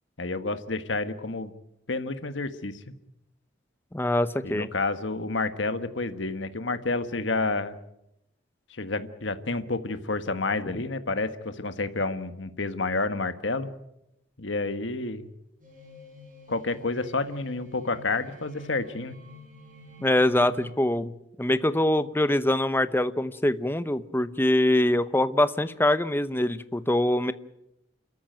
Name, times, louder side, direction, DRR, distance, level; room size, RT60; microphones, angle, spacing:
voice 1, 0.2-1.5 1.9-2.9 4.4-7.8 8.7-13.7 14.4-15.3 16.5-19.2, left 3 dB, 90° left, 10 dB, 1.5 m, -29 dB
voice 2, 3.9-4.7 20.0-21.1 21.4-27.3, left 1 dB, 10° left, 13 dB, 0.8 m, -24 dB
sound 1, 15.6-20.7, left 2 dB, 45° right, 6.6 m, -49 dB
29.0 x 14.0 x 9.2 m, 0.85 s
head